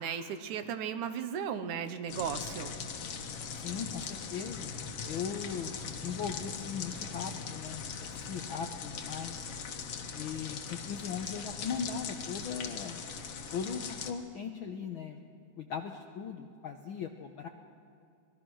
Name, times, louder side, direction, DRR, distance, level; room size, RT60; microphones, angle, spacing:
voice 1, 0.0-2.7, right 8 dB, 75° right, 10 dB, 2.4 m, -36 dB
sound 1, 2.1-14.1, left 6 dB, 55° left, 2.1 m, -40 dB
voice 2, 3.5-4.7 5.0-9.5 10.1-13.0 13.5-15.2 15.6-17.5, left 6 dB, 80° left, 4 dB, 1.1 m, -39 dB
26.0 x 20.0 x 6.3 m, 2.5 s
omnidirectional pair, 3.6 m